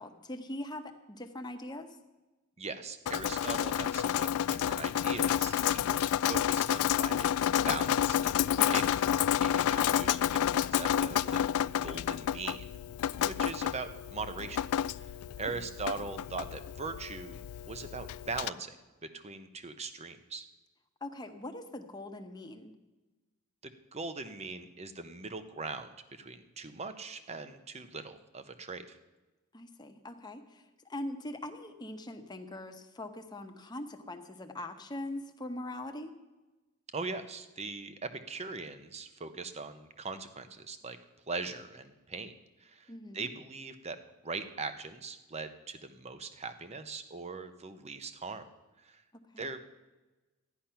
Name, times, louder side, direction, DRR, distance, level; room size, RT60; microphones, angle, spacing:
voice 1, 0.0-1.9 15.5-15.6 21.0-22.7 29.5-36.1 42.9-43.3 49.1-49.5, left 1 dB, 20° left, 5 dB, 1.0 m, -42 dB
voice 2, 2.6-9.0 9.4-10.2 10.5-11.4 11.8-12.7 13.1-14.6 14.9-17.3 17.7-18.8 19.0-20.5 23.6-29.0 36.9-41.0 41.3-42.3 42.6-44.0 44.2-48.4 48.8-49.0 49.4-49.6, right 4 dB, 30° right, 10 dB, 0.8 m, -41 dB
Drip, 3.1-18.5, left 10 dB, 85° left, 0.3 m, -30 dB
13.5 x 10.5 x 5.8 m, 1.1 s
head